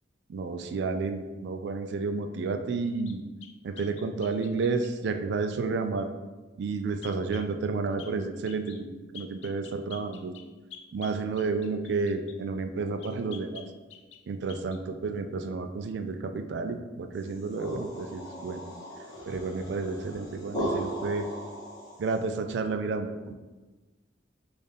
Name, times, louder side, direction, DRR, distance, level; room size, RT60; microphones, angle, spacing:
voice 1, 0.3-3.2 3.6-6.1 6.6-10.3 10.9-13.7 14.3-18.6 19.3-21.3 22.0-23.3, right 4 dB, 60° right, 8 dB, 0.3 m, -31 dB
sound 1, 3.1-5.0 7.0-7.5 8.0-8.2 8.5-8.8 9.1-12.4 13.0-14.2 14.5-14.8, left 8 dB, 70° left, 0.4 m, -48 dB
sound 2, 17.2-22.2, equal, 20° left, 1.0 m, -37 dB
4.1 x 2.5 x 3.3 m, 1.2 s
head